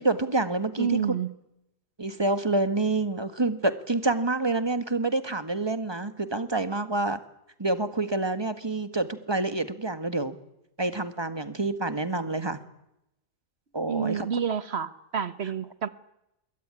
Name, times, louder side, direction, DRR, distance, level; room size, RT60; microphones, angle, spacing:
voice 1, 0.0-1.0 2.0-7.2 7.6-10.3 10.8-12.6 13.7-14.3, right 2 dB, 20° right, 11 dB, 1.7 m, -27 dB
voice 2, 0.8-1.3 13.9-15.9, right 7 dB, 50° right, 14 dB, 1.4 m, -29 dB
26.5 x 22.0 x 9.9 m, 0.86 s
omnidirectional pair, 1.5 m